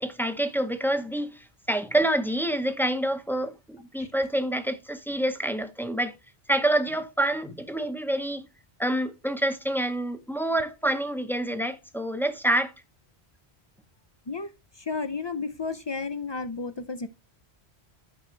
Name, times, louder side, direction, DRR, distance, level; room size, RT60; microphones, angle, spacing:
voice 1, 0.0-6.1 6.5-8.5 8.8-12.7, right 1 dB, ahead, 0.6 m, -27 dB
voice 2, 14.8-17.1, left 4 dB, 35° left, 0.4 m, -32 dB
9.7 x 6.0 x 3.2 m
omnidirectional pair, 1.1 m